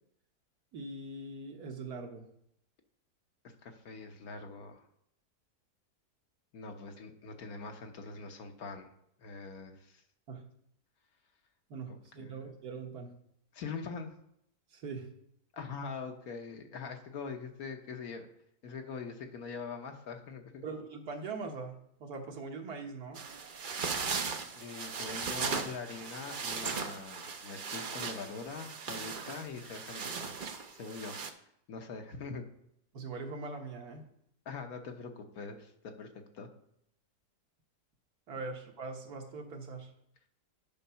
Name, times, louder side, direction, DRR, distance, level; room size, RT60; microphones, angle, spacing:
voice 1, 0.7-2.3 10.3-10.5 11.7-13.1 14.7-15.1 20.6-23.2 32.9-34.0 38.3-39.9, right 3 dB, 70° right, 3 dB, 1.7 m, -42 dB
voice 2, 3.4-4.9 6.5-8.9 9.2-10.0 11.9-12.5 13.5-14.1 15.5-18.3 18.6-20.6 24.6-31.2 31.7-32.5 34.4-36.5, left 4 dB, 65° left, 5 dB, 1.4 m, -43 dB
sound 1, 23.2-31.3, right 5 dB, 50° right, 0.6 m, -38 dB
9.3 x 5.2 x 5.7 m, 0.73 s
omnidirectional pair, 1.7 m